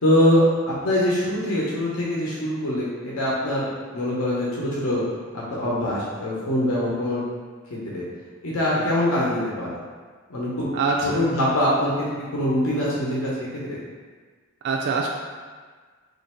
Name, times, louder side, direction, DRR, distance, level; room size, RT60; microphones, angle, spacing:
voice 1, 0.0-3.7 3.9-5.0 5.5-7.2 7.9-8.0 8.4-9.8 10.3-10.7 11.0-13.8, left 1 dB, 75° left, -6 dB, 0.8 m, -23 dB
voice 2, 10.7-11.2 14.6-15.1, right 4 dB, 50° right, -1 dB, 0.3 m, -24 dB
3.1 x 2.6 x 4.3 m, 1.5 s
head